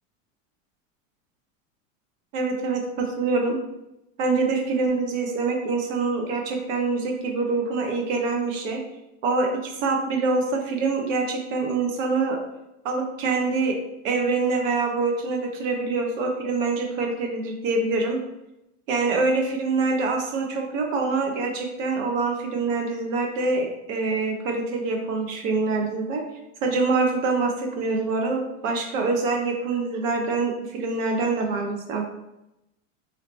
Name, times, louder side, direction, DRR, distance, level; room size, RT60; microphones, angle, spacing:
voice 1, 2.3-3.6 4.2-8.8 9.2-12.4 12.8-13.8 14.0-18.2 18.9-26.2 26.6-32.0, right 3 dB, 75° right, 2 dB, 0.9 m, -25 dB
2.8 x 2.8 x 3.2 m, 0.90 s
supercardioid pair, 125°, 39 cm